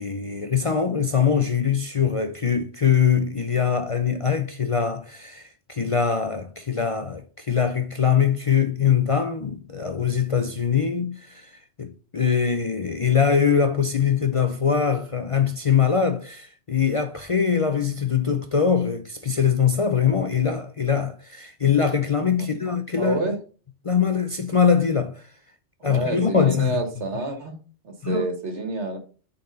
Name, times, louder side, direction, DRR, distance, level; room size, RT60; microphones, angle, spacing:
voice 1, 0.0-11.5 11.8-23.4 23.8-25.2 25.8-26.8 28.0-28.3, left 7 dB, 45° left, 0.5 m, -22 dB
voice 2, 22.9-23.4 25.8-27.6 27.8-29.0, right 2 dB, 80° right, 1.8 m, -28 dB
6.7 x 4.1 x 5.2 m
omnidirectional pair, 1.2 m